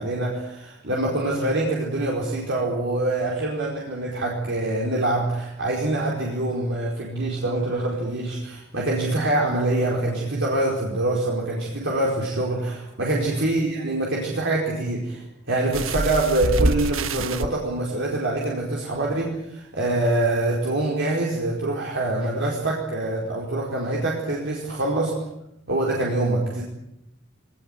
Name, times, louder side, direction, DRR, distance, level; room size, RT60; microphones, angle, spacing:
voice 1, 0.0-25.1 25.7-26.6, right 2 dB, 65° right, -2 dB, 4.6 m, -25 dB
sound 1, 15.7-17.5 18.4-18.5 18.9-19.0, right 2 dB, 80° right, 1.4 m, -25 dB
21.5 x 19.5 x 9.4 m, 0.85 s
head